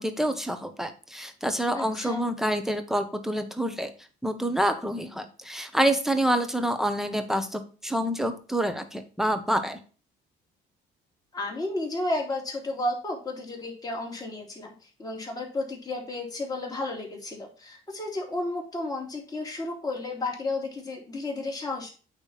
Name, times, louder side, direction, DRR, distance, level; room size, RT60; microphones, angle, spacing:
voice 1, 0.0-3.9 4.2-9.8, right 1 dB, ahead, 8 dB, 1.3 m, -27 dB
voice 2, 1.7-2.2 11.3-21.9, left 2 dB, 20° left, -1 dB, 3.4 m, -32 dB
8.9 x 3.5 x 5.9 m, 0.36 s
cardioid pair, 85°, 19 cm